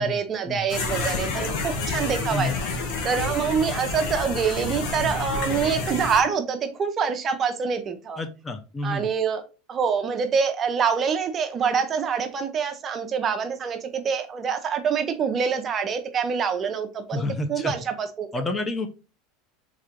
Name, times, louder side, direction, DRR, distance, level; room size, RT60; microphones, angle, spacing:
voice 1, 0.0-2.5 3.0-8.2 8.8-9.4 9.7-17.2 17.5-18.5, right 6 dB, 30° right, 8 dB, 0.6 m, -25 dB
sound 1, 0.7-6.2, left 3 dB, 60° left, 1.3 m, -29 dB
voice 2, 8.2-9.1 17.1-17.8 18.3-18.9, left 2 dB, 20° left, 8 dB, 0.5 m, -29 dB
3.6 x 3.2 x 3.6 m, 0.33 s
supercardioid pair, 125°, 0 cm